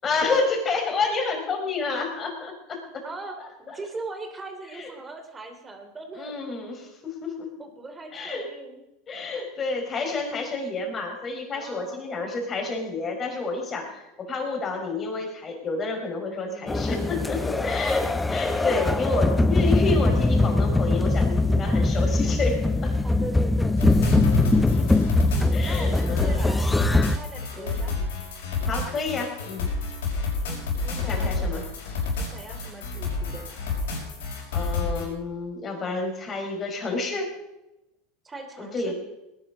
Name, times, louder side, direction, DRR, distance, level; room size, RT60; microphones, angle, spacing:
voice 1, 0.0-2.8 4.7-4.9 6.2-7.5 8.1-8.4 9.1-22.9 24.5-25.0 25.5-26.4 27.5-27.7 28.6-29.7 31.0-31.6 34.5-37.3 38.7-38.9, left 3 dB, 30° left, 2 dB, 5.0 m, -29 dB
voice 2, 3.0-6.4 7.6-8.8 11.5-12.0 16.5-16.7 18.6-19.1 23.0-24.2 24.5-24.8 25.4-28.0 30.4-31.6 32.2-33.6 38.2-38.9, right 3 dB, 20° right, 5 dB, 3.3 m, -40 dB
sound 1, 16.7-27.2, left 2 dB, 10° left, 0.7 m, -22 dB
Melodic Synths, 23.8-35.0, left 3 dB, 85° left, 6.0 m, -29 dB
19.5 x 11.0 x 5.2 m, 0.94 s
hypercardioid pair, 100°, 0 cm